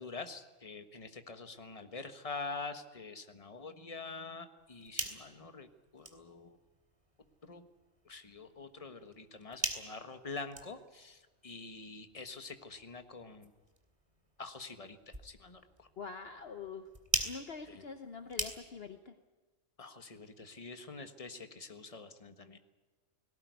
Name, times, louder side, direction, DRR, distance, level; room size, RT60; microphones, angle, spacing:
voice 1, 0.0-5.7 5.9-6.6 7.5-7.6 8.0-13.5 14.4-15.9 17.7-17.8 19.8-22.6, left 4 dB, 30° left, 8 dB, 1.5 m, -46 dB
sound 1, 4.6-19.0, right 2 dB, 25° right, 2.6 m, -44 dB
voice 2, 16.0-16.9 17.2-19.1, left 5 dB, 55° left, 8 dB, 1.2 m, -45 dB
19.0 x 17.5 x 9.5 m, 1.2 s
omnidirectional pair, 1.3 m